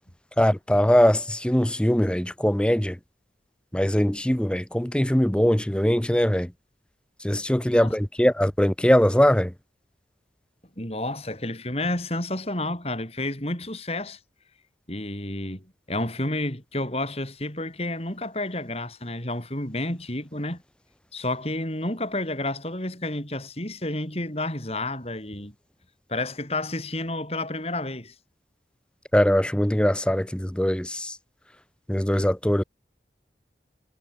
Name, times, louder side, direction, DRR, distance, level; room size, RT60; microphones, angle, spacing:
voice 1, 0.4-3.0 3.7-6.5 7.2-9.5 29.1-31.2 31.9-32.6, equal, 5° left, 0.7 m, -21 dB
voice 2, 10.8-14.2 14.9-20.6 21.1-25.5 26.1-28.1, left 1 dB, 35° left, 6.9 m, -30 dB
head